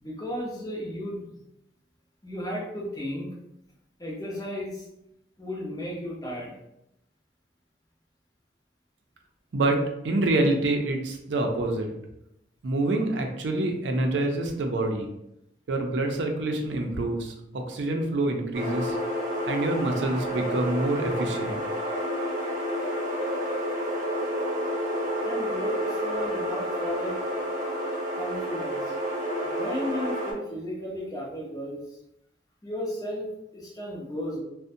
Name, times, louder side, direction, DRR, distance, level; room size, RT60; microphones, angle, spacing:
voice 1, 0.0-1.4 2.2-3.4 4.0-4.9 5.4-6.5 25.2-27.2 28.1-28.9 29.4-31.8 32.6-34.4, equal, 20° left, -4 dB, 0.6 m, -34 dB
voice 2, 9.5-11.9 12.6-15.1 15.7-19.0 19.5-21.6, right 2 dB, 90° right, 3 dB, 0.4 m, -26 dB
sound 1, 18.5-30.3, equal, 50° right, 0.7 m, -30 dB
2.5 x 2.1 x 2.6 m, 0.82 s
head